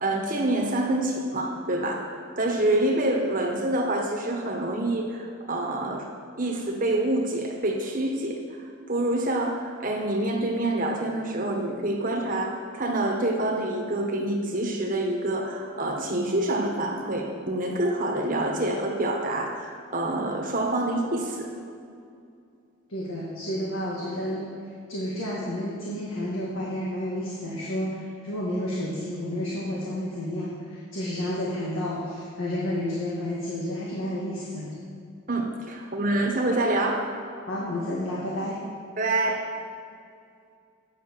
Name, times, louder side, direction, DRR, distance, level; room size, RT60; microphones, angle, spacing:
voice 1, 0.0-6.1 6.4-8.4 8.9-21.5 35.3-37.0 39.0-39.4, right 1 dB, 40° right, 0 dB, 1.3 m, -26 dB
voice 2, 22.9-24.5 24.9-34.7 37.5-38.6, left 1 dB, 85° left, -5 dB, 1.7 m, -31 dB
9.0 x 6.8 x 6.8 m, 2.4 s
head